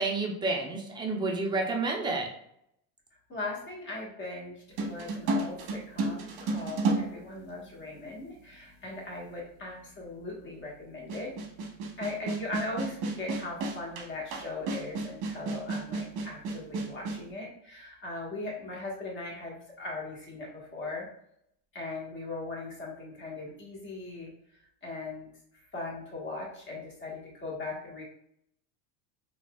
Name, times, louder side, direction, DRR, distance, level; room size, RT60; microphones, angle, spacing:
voice 1, 0.0-2.3, right 3 dB, 10° right, 0 dB, 0.4 m, -30 dB
voice 2, 3.3-11.3 12.0-21.1 21.7-24.3 24.8-25.3 25.7-28.0, left 2 dB, 25° left, -3 dB, 1.3 m, -39 dB
sound 1, 4.8-8.0 8.8-8.9 11.1-17.2, right 3 dB, 50° right, 0.9 m, -32 dB
4.0 x 2.7 x 2.2 m, 0.72 s
supercardioid pair, 120°, 48 cm